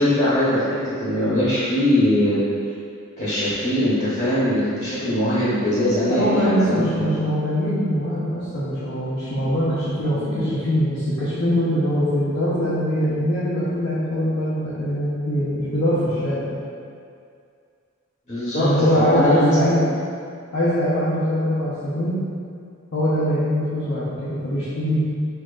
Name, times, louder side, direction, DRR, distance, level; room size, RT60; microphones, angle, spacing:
voice 1, 0.0-2.4 3.2-7.1 10.1-10.5 18.3-19.6, left 1 dB, 40° left, -11 dB, 1.0 m, -21 dB
voice 2, 6.1-16.4 18.6-19.8 20.5-22.2 22.9-25.0, equal, 80° left, -12 dB, 1.0 m, -22 dB
6.8 x 2.8 x 2.5 m, 2.3 s
head